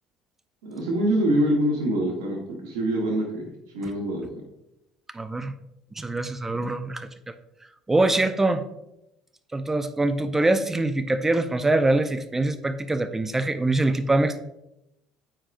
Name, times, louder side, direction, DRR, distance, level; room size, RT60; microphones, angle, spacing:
voice 1, 0.6-3.5 3.7-4.3, right 1 dB, 75° right, -1 dB, 1.1 m, -25 dB
voice 2, 5.1-5.5 6.0-7.1 7.9-8.6 9.5-14.4, right 2 dB, 15° right, 10 dB, 0.6 m, -23 dB
8.7 x 4.7 x 2.5 m, 0.88 s
hypercardioid pair, 60°, 2 cm